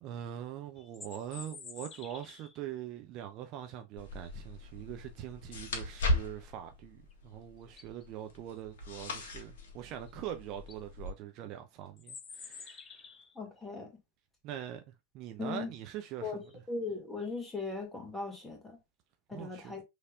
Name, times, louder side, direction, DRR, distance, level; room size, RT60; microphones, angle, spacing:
voice 1, 0.0-13.0 14.4-16.3 19.3-19.7, right 11 dB, 40° right, 0.6 m, -43 dB
sound 1, 0.8-2.6 7.1-7.2 7.6-8.0 10.1-10.2 10.5-10.8 12.0-13.4, left 5 dB, 25° left, 0.8 m, -49 dB
sound 2, 4.0-11.1, left 1 dB, 55° left, 1.6 m, -38 dB
voice 2, 13.4-13.9 15.4-15.7 16.2-18.8 19.3-19.8, left 3 dB, 5° left, 2.0 m, -38 dB
6.4 x 3.4 x 2.4 m
figure-of-eight pair, 90°, 0 cm